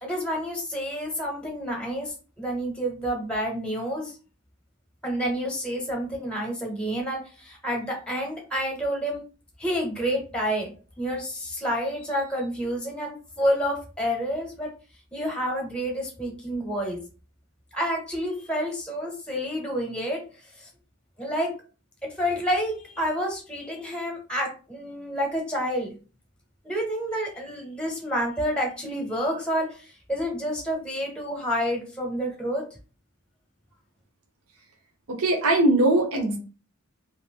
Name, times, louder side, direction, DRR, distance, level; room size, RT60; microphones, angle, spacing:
voice 1, 0.0-4.1 5.0-9.2 9.6-14.7 15.1-17.0 17.7-20.2 20.6-20.7 21.2-21.5 22.0-26.0 26.6-32.6, equal, 5° left, 0 dB, 0.7 m, -29 dB
voice 2, 35.1-36.4, right 2 dB, 75° right, 3 dB, 0.7 m, -21 dB
2.5 x 2.4 x 3.4 m, 0.35 s
head